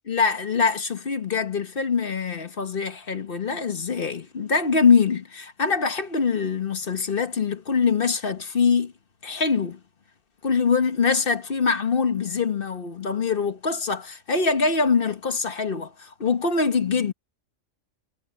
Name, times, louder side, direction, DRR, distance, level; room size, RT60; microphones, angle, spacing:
voice 1, 0.1-8.9 9.2-9.8 10.4-17.1, left 5 dB, 50° left, 1.4 m, -23 dB
omnidirectional pair, 1.3 m